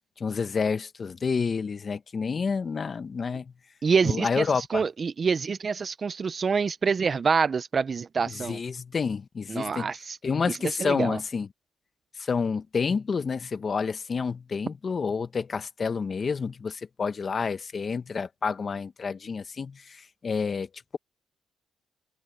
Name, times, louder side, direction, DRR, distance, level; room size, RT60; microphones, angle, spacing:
voice 1, 0.2-3.5 4.0-4.8 8.2-9.9 10.2-11.5 12.2-21.0, left 5 dB, 40° left, 1.5 m, -29 dB
voice 2, 3.8-4.4 4.7-8.6 9.5-10.2 10.5-11.2, right 5 dB, 40° right, 0.7 m, -26 dB
cardioid pair, 90°, 0 cm